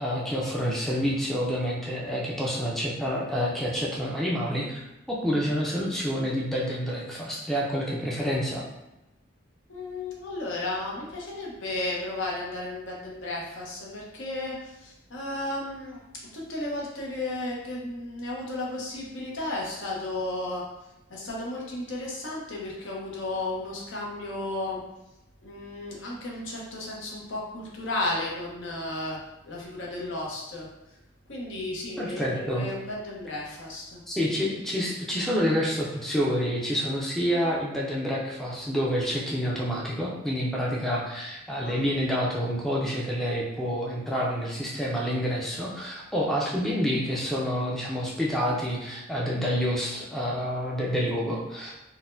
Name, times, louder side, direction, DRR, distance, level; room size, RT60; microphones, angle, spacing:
voice 1, 0.0-8.6 32.0-32.7 34.1-51.8, equal, ahead, -4 dB, 0.4 m, -28 dB
voice 2, 9.7-16.0 16.3-20.6 21.1-24.8 25.4-29.2 29.4-30.7 31.3-34.0 41.6-41.9, left 2 dB, 80° left, -3 dB, 0.8 m, -34 dB
4.0 x 2.1 x 2.5 m, 0.95 s
head